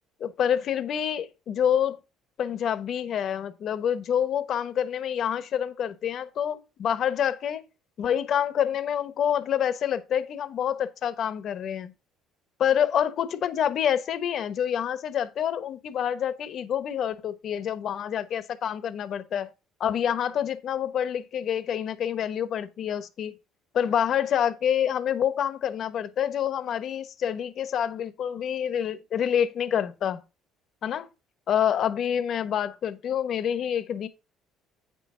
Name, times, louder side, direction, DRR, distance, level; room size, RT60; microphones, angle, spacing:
voice 1, 0.2-2.0 2.4-7.6 8.0-11.9 12.6-19.5 19.8-23.3 23.7-30.2 30.8-31.1 31.5-34.1, left 9 dB, 50° left, 1.1 m, -27 dB
9.0 x 6.3 x 3.8 m
cardioid pair, 125°, 0 cm